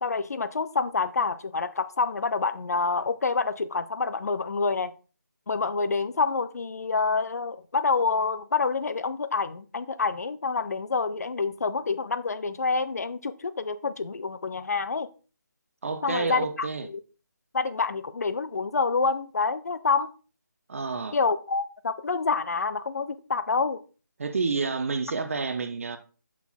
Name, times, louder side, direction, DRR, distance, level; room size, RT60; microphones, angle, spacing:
voice 1, 0.0-4.9 5.5-15.1 16.0-17.0 17.5-20.1 21.1-23.8, left 4 dB, 55° left, 0.6 m, -27 dB
voice 2, 15.8-16.9 20.7-21.2 24.2-26.0, right 4 dB, 45° right, 0.7 m, -29 dB
6.8 x 5.9 x 3.9 m
figure-of-eight pair, 160°, 10 cm